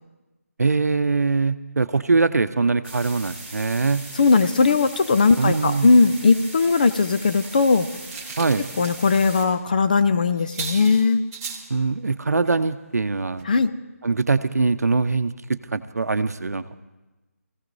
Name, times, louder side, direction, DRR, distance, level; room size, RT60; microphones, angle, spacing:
voice 1, 0.6-4.0 5.4-5.9 8.4-8.7 11.7-13.5 14.0-16.6, right 4 dB, 80° right, 11 dB, 0.7 m, -22 dB
sound 1, 2.8-9.4, right 2 dB, 15° left, 2.6 m, -39 dB
voice 2, 4.1-7.9 8.8-11.2 13.4-13.7, left 4 dB, 30° left, 10 dB, 0.4 m, -18 dB
sound 2, 7.4-9.3 9.6-9.8 10.0-10.1 10.4-11.7 12.4-12.6 13.0-13.1 13.4-13.5, right 5 dB, 15° right, 1.1 m, -37 dB
24.0 x 16.0 x 2.7 m, 1.1 s
figure-of-eight pair, 165°, 8 cm